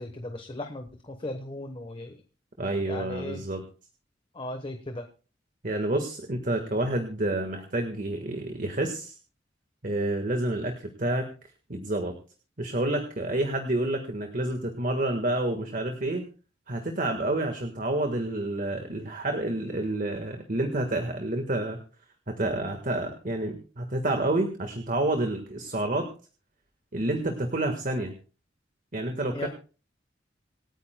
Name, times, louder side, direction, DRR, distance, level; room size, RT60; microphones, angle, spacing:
voice 1, 0.0-2.2 2.9-3.4 4.3-5.1 29.3-29.5, left 1 dB, 30° left, 6 dB, 1.1 m, -37 dB
voice 2, 2.6-3.6 5.6-9.2 9.8-11.3 11.7-12.1 12.6-16.2 16.7-21.8 22.3-26.1 26.9-28.1 28.9-29.5, right 1 dB, 45° right, 5 dB, 1.5 m, -29 dB
27.0 x 9.2 x 2.2 m, 0.36 s
head